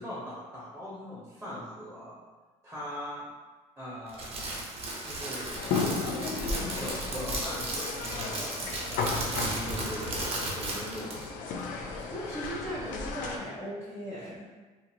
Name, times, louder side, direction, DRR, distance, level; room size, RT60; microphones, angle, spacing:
voice 1, 0.0-2.1 2.6-3.2 3.8-4.6 5.0-5.6 6.5-8.7 8.9-11.3, equal, 10° right, -8 dB, 1.0 m, -41 dB
Crackle, 4.1-11.2, right 2 dB, 45° right, 0.8 m, -35 dB
sound 1, 5.5-13.4, left 4 dB, 80° left, 0.4 m, -34 dB
voice 2, 12.1-14.5, equal, 20° left, -9 dB, 0.8 m, -38 dB
2.5 x 2.5 x 2.8 m, 1.3 s
cardioid pair, 100°, 14 cm